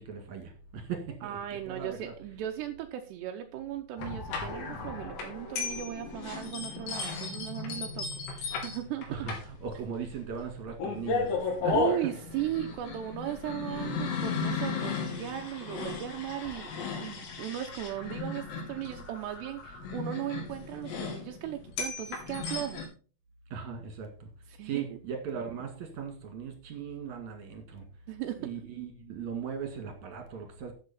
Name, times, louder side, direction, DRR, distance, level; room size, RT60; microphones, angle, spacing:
voice 1, 0.0-1.4 1.7-2.1 9.1-11.9 23.5-24.3 24.6-27.8 28.4-30.7, right 7 dB, 50° right, 2.4 m, -38 dB
voice 2, 1.2-9.3 11.4-16.7 17.0-22.9 24.5-25.0 28.1-28.4, right 12 dB, 90° right, 2.4 m, -37 dB
sound 1, 4.0-22.9, left 4 dB, 80° left, 5.4 m, -35 dB
11.5 x 8.2 x 4.3 m
omnidirectional pair, 5.9 m